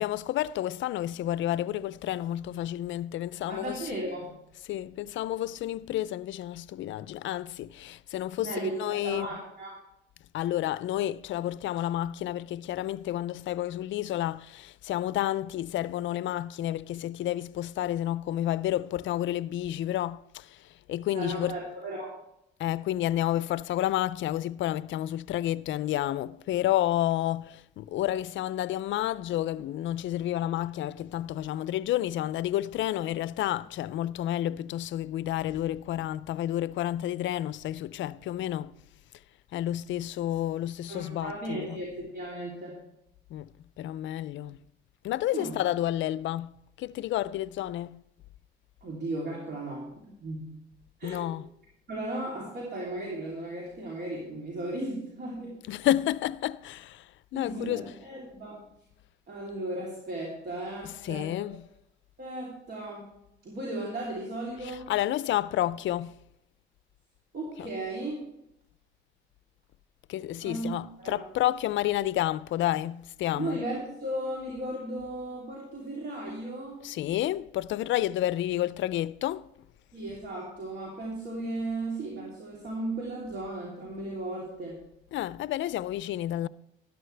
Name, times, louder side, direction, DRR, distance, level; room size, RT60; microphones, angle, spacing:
voice 1, 0.0-4.0 4.6-9.3 10.3-20.6 20.9-21.6 22.6-38.7 39.5-41.8 43.3-43.5 43.8-44.6 45.0-48.0 51.0-51.5 55.6-58.0 60.8-61.7 64.6-66.2 67.6-67.7 70.1-73.6 76.8-79.5 85.1-86.5, left 13 dB, 70° left, 0.4 m, -30 dB
voice 2, 3.5-4.4 8.4-9.8 21.1-22.2 40.9-42.8 45.3-45.6 48.8-50.4 51.0-51.3 51.9-55.6 57.3-58.6 59.3-61.5 62.2-63.1 63.4-64.9 67.3-68.2 70.4-70.7 71.0-71.2 73.3-76.8 79.9-84.8, right 1 dB, 55° right, 3.2 m, -36 dB
13.0 x 12.5 x 3.3 m
cardioid pair, 90°, 20 cm